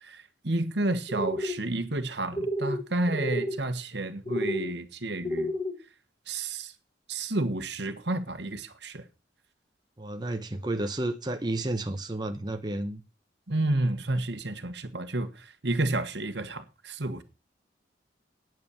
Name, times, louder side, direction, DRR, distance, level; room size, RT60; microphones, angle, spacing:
voice 1, 0.0-5.5 6.3-6.7 7.1-9.0 13.5-17.2, right 2 dB, 70° right, 1.4 m, -30 dB
sound 1, 1.1-1.6 2.3-2.8 3.1-3.6 4.3-4.7 5.2-5.8, equal, 25° left, 1.7 m, -30 dB
voice 2, 10.0-13.0, right 1 dB, 25° right, 0.8 m, -31 dB
9.2 x 8.3 x 7.0 m
head